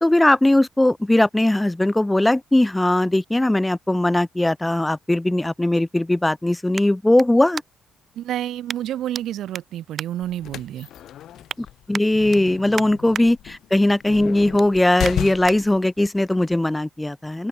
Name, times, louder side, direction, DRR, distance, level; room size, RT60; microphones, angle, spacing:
voice 1, 0.0-7.6 11.9-17.5, left 1 dB, 10° left, 0.6 m, -19 dB
sound 1, 6.7-8.0 8.7-9.2 9.5-10.8 11.2-11.6 11.9-13.3 13.7-13.9 14.3-15.6 16.1-16.2, right 7 dB, 50° right, 3.9 m, -36 dB
voice 2, 8.1-10.9, right 12 dB, 75° right, 2.4 m, -29 dB
sound 2, 10.2-15.8, left 11 dB, 75° left, 4.8 m, -34 dB
cardioid pair, 90°, 0 cm